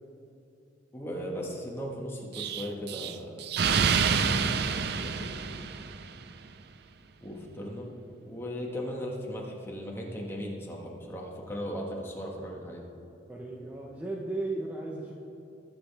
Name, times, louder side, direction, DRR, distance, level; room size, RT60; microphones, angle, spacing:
voice 1, 0.9-5.4 7.2-7.9 8.3-12.8, equal, 15° left, -2 dB, 1.6 m, -38 dB
Explosion, 2.3-6.2, right 6 dB, 60° right, 0.5 m, -28 dB
voice 2, 13.3-15.1, right 2 dB, 10° right, -3 dB, 1.0 m, -35 dB
22.0 x 7.9 x 3.5 m, 2.8 s
head